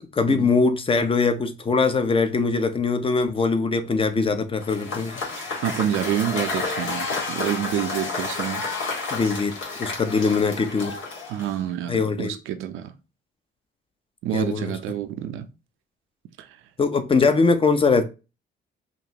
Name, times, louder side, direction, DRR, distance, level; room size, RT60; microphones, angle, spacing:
voice 1, 0.1-5.2 9.1-11.0 11.9-12.3 14.3-14.7 16.8-18.0, left 4 dB, 25° left, 0.7 m, -22 dB
Cheering / Applause / Crowd, 4.6-11.7, left 4 dB, 80° left, 2.0 m, -30 dB
voice 2, 5.6-8.7 11.3-13.0 14.2-15.5 16.4-16.6, right 11 dB, 90° right, 0.6 m, -28 dB
5.2 x 2.5 x 2.9 m
cardioid pair, 90°, 20 cm